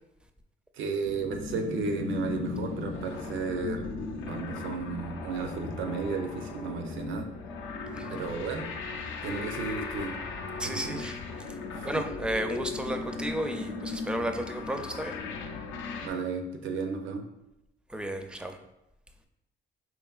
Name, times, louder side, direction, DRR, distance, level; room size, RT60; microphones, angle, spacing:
voice 1, 0.7-3.8 4.3-7.3 8.1-8.7 9.2-10.2 10.6-11.0 11.8-12.0 16.0-17.3, right 4 dB, 75° right, 5 dB, 0.6 m, -33 dB
sound 1, 1.0-16.1, left 4 dB, 80° left, 0.5 m, -37 dB
voice 2, 10.6-11.2 11.8-15.1 17.9-18.6, right 1 dB, 5° right, 6 dB, 0.4 m, -33 dB
4.7 x 3.2 x 2.4 m, 0.89 s
cardioid pair, 90°, 20 cm